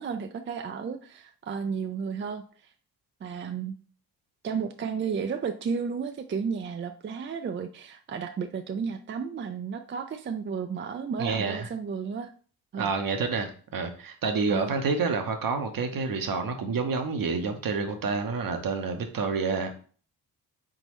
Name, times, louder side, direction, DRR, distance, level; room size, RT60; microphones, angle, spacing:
voice 1, 0.0-2.7 3.2-3.7 4.4-12.3 12.7-12.9 14.5-14.7, right 6 dB, 30° right, 7 dB, 0.4 m, -33 dB
voice 2, 11.2-11.7 12.7-19.8, right 4 dB, 55° right, 5 dB, 0.9 m, -28 dB
3.9 x 3.8 x 3.1 m, 0.42 s
supercardioid pair, 55°, 40 cm